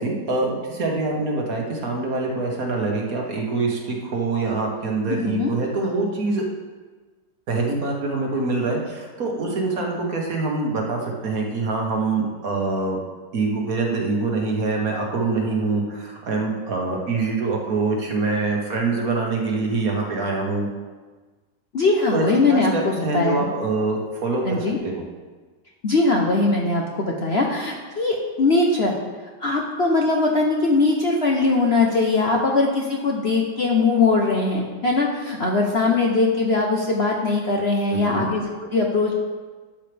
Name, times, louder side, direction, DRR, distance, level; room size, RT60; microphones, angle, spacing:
voice 1, 0.0-6.4 7.5-13.0 13.3-20.7 22.1-25.0 37.9-38.3, right 3 dB, 55° right, 0 dB, 1.7 m, -25 dB
voice 2, 5.1-5.5 21.7-23.4 24.4-24.8 25.8-28.9 29.4-39.1, left 3 dB, 45° left, 0 dB, 0.9 m, -21 dB
12.0 x 7.4 x 3.4 m, 1.3 s
omnidirectional pair, 1.9 m